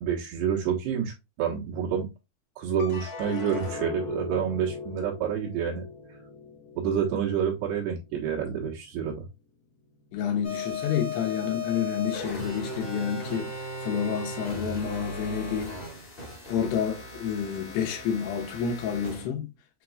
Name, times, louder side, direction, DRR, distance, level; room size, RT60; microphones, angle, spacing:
voice 1, 0.0-1.1 1.4-2.1 2.6-5.8 6.8-9.2, right 7 dB, 80° right, 3.3 m, -28 dB
sound 1, 2.8-9.2 9.7-10.4, left 4 dB, 65° left, 1.6 m, -40 dB
voice 2, 10.1-15.8 16.5-19.5, left 8 dB, 80° left, 3.1 m, -29 dB
sound 2, 10.4-19.3, left 2 dB, 30° left, 1.0 m, -36 dB
7.4 x 3.0 x 2.3 m
omnidirectional pair, 4.8 m